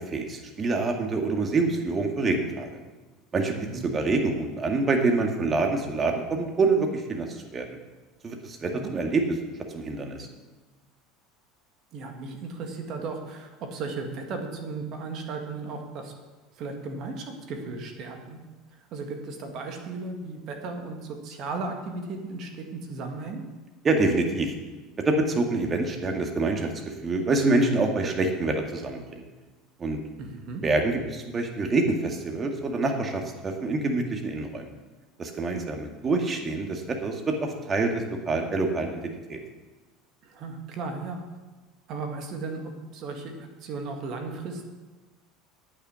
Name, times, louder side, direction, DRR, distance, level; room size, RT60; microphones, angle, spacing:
voice 1, 0.1-2.7 3.3-3.5 3.9-7.3 7.5-7.7 8.2-9.2 9.7-10.3 23.8-24.5 25.1-26.7 27.0-29.3 29.8-30.0 30.6-34.7 35.2-39.0 39.3-39.4, right 3 dB, 30° right, 3 dB, 2.0 m, -26 dB
voice 2, 3.5-3.9 8.7-9.0 11.9-16.1 16.5-18.4 18.9-23.4 30.2-30.6 40.2-41.2 41.9-44.7, right 3 dB, 50° right, 4 dB, 1.9 m, -35 dB
9.0 x 9.0 x 6.3 m, 1.2 s
hypercardioid pair, 70°, 0 cm